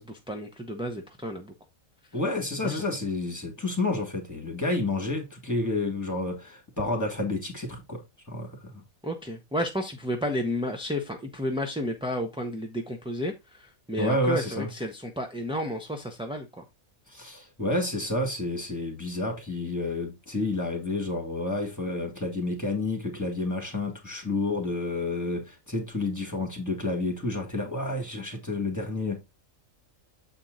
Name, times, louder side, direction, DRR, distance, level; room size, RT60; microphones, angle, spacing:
voice 1, 0.0-1.5 2.6-2.9 9.0-16.6, equal, 5° right, 0.6 m, -32 dB
voice 2, 2.1-8.8 14.0-14.7 17.1-29.2, left 2 dB, 15° left, 2.0 m, -30 dB
7.6 x 4.4 x 3.8 m
omnidirectional pair, 1.4 m